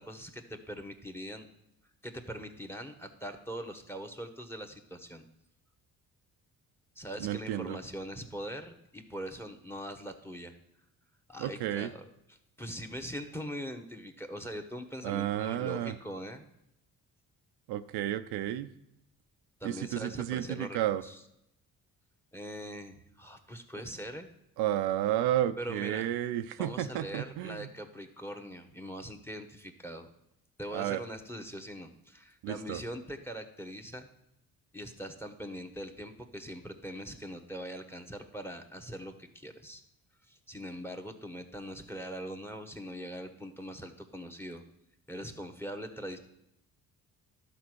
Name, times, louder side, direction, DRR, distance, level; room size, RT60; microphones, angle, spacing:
voice 1, 0.0-1.5 2.0-5.3 7.0-10.5 11.3-16.4 19.6-21.2 22.3-24.3 25.6-26.1 26.6-30.1 30.6-34.1 34.7-39.8 40.3-44.6 45.1-46.2, equal, 5° left, 6 dB, 1.3 m, -42 dB
voice 2, 7.2-7.8 11.4-11.9 15.0-15.9 17.7-18.7 19.6-21.0 24.6-27.7 30.7-31.0 32.4-32.8, right 12 dB, 85° right, 10 dB, 0.6 m, -32 dB
11.5 x 4.1 x 6.3 m, 0.81 s
supercardioid pair, 60°, 39 cm